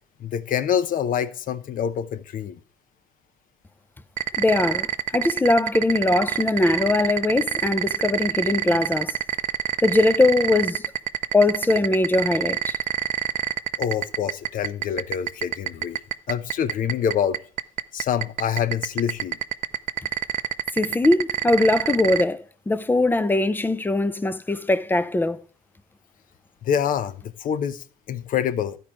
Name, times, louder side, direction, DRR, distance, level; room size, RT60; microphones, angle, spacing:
voice 1, 0.2-2.6 13.8-16.0 16.3-17.4 17.9-19.4 26.6-28.8, left 8 dB, 55° left, 0.8 m, -26 dB
sound 1, 4.2-22.2, right 12 dB, 50° right, 0.5 m, -25 dB
voice 2, 4.4-4.9 5.1-9.2 9.8-10.8 11.3-12.8 20.7-25.4, left 2 dB, 10° left, 0.5 m, -21 dB
12.5 x 4.6 x 5.0 m
cardioid pair, 110°, 17 cm